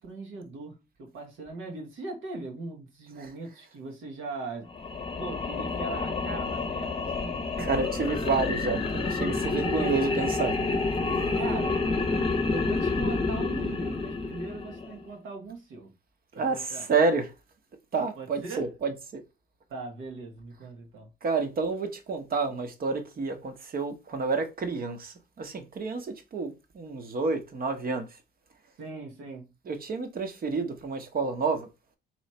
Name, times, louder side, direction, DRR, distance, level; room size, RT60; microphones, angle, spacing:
voice 1, 0.0-4.7 5.2-7.7 11.4-11.8 12.5-15.9 16.3-16.9 18.2-18.7 19.7-21.1 28.8-29.5, right 3 dB, 90° right, 1.3 m, -39 dB
sound 1, 4.7-15.0, left 3 dB, 30° left, 0.8 m, -29 dB
voice 2, 7.6-10.6 16.3-17.3 17.9-19.2 21.2-28.1 29.7-31.7, right 4 dB, 50° right, 1.0 m, -29 dB
3.2 x 3.1 x 4.2 m
cardioid pair, 90°, 20 cm